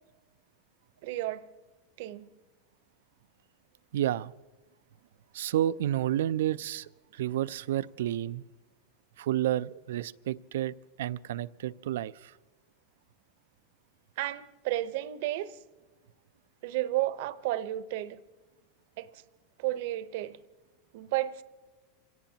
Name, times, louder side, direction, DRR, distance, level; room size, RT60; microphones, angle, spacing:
voice 1, 1.0-1.4 2.0-2.3 14.2-15.6 16.6-18.2 19.0-19.2 19.6-20.4 20.9-21.4, right 15 dB, 65° right, 0.8 m, -32 dB
voice 2, 3.9-4.3 5.3-8.4 9.2-12.3, right 12 dB, 90° right, 0.4 m, -30 dB
26.5 x 17.5 x 2.9 m
supercardioid pair, 155°, 0 cm